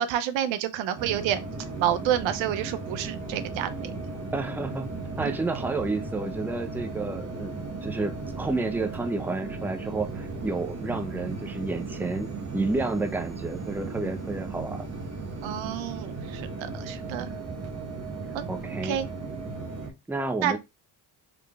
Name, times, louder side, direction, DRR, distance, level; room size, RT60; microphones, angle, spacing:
voice 1, 0.0-1.4 1.8-3.9 15.4-16.5 16.7-17.3 18.3-18.4 18.8-19.0 20.4-20.6, right 10 dB, 75° right, 0.6 m, -28 dB
sound 1, 1.0-19.9, right 3 dB, 35° right, 1.1 m, -36 dB
voice 2, 4.3-4.9 5.2-14.9 18.5-19.0 20.1-20.6, right 3 dB, 5° right, 0.5 m, -31 dB
3.7 x 3.2 x 2.3 m
supercardioid pair, 65°, 46 cm